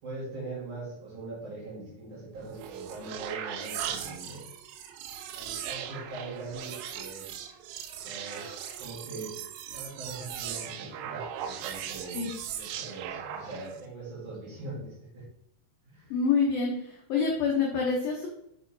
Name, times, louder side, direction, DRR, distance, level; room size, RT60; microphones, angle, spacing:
voice 1, 0.0-4.4 5.3-7.3 7.9-9.4 9.7-15.2 15.8-16.1, right 2 dB, 50° right, -6 dB, 2.8 m, -42 dB
sound 1, 2.4-13.9, right 9 dB, 90° right, 3.2 m, -38 dB
voice 2, 16.1-18.3, left 5 dB, 85° left, -1 dB, 2.0 m, -27 dB
7.1 x 4.3 x 4.0 m, 0.76 s
omnidirectional pair, 5.5 m